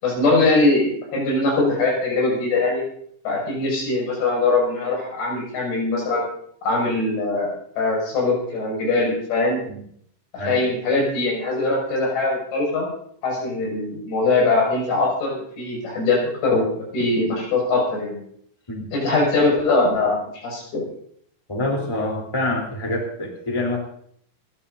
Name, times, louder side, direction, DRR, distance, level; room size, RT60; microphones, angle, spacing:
voice 1, 0.0-2.8 3.3-6.3 6.6-9.6 10.3-12.9 13.2-18.2 18.9-20.8, left 3 dB, 90° left, -2 dB, 8.8 m, -22 dB
voice 2, 21.5-23.8, left 1 dB, 5° left, 0 dB, 3.0 m, -26 dB
28.5 x 14.0 x 2.7 m, 0.64 s
omnidirectional pair, 5.0 m